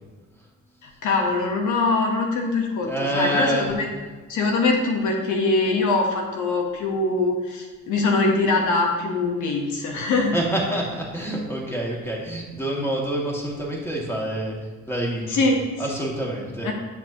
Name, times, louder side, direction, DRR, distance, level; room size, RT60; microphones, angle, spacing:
voice 1, 0.8-3.9 4.3-10.3 15.3-15.6 16.6-16.7, left 3 dB, 80° left, 2 dB, 1.2 m, -23 dB
voice 2, 2.8-3.7 9.9-10.0 10.3-14.5 14.9-15.4 15.8-16.7, right 1 dB, 10° left, -3 dB, 2.3 m, -27 dB
9.6 x 6.9 x 2.9 m, 1.3 s
cardioid pair, 90°, 30 cm